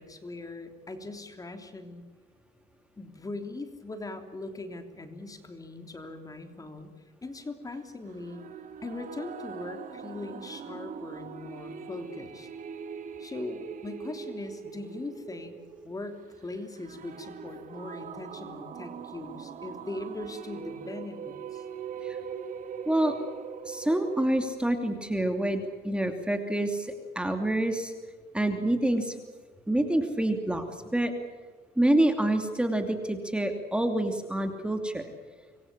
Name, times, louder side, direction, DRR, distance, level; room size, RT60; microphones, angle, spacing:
voice 1, 0.0-2.0 3.0-6.9 7.2-8.4 8.8-12.5 13.2-15.6 15.8-21.6, left 2 dB, 20° left, 6 dB, 3.1 m, -40 dB
sound 1, 8.2-24.2, right 7 dB, 50° right, 2.4 m, -41 dB
voice 2, 23.6-27.9 28.3-29.2 29.7-30.7 30.9-31.1 31.8-35.1, right 1 dB, 5° right, 5 dB, 2.7 m, -27 dB
26.5 x 22.5 x 7.4 m, 1.5 s
cardioid pair, 110°, 17 cm